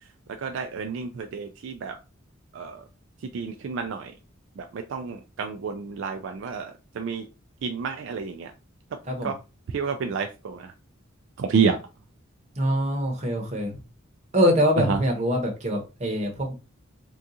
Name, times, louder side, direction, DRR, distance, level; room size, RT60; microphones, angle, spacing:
voice 1, 0.4-1.9 2.5-2.8 3.3-4.1 4.6-6.7 7.0-7.3 7.6-8.5 9.2-9.4 9.7-10.7 11.4-11.8 14.9-15.0, right 5 dB, 60° right, 5 dB, 0.3 m, -29 dB
voice 2, 12.6-13.7 14.3-16.5, equal, 35° right, 2 dB, 0.9 m, -24 dB
3.6 x 2.3 x 2.7 m, 0.30 s
head